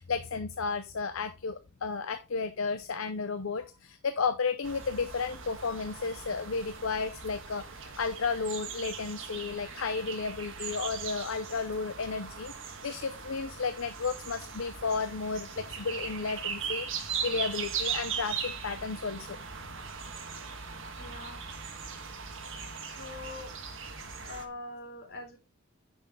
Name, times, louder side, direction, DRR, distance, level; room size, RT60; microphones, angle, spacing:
voice 1, 0.0-16.9 17.2-19.4, left 4 dB, 65° left, 11 dB, 0.6 m, -33 dB
sound 1, 4.6-24.5, right 6 dB, 60° right, 1.5 m, -39 dB
voice 2, 21.0-21.4 22.8-23.5 24.2-25.4, left 2 dB, 50° left, 0 dB, 3.8 m, -43 dB
9.7 x 6.4 x 3.6 m, 0.27 s
head